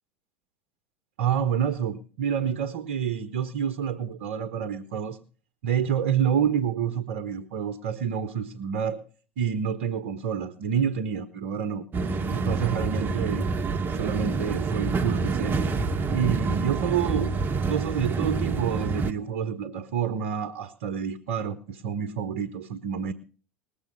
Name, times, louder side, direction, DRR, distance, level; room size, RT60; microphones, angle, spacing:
voice 1, 1.2-5.2 5.6-9.0 9.4-11.9 12.3-13.5 13.9-15.6 16.1-17.3 17.7-23.1, right 8 dB, 70° right, 11 dB, 1.0 m, -28 dB
sound 1, 11.9-19.1, right 4 dB, 30° right, 1.2 m, -27 dB
20.0 x 7.3 x 5.4 m, 0.39 s
hypercardioid pair, 75°, 7 cm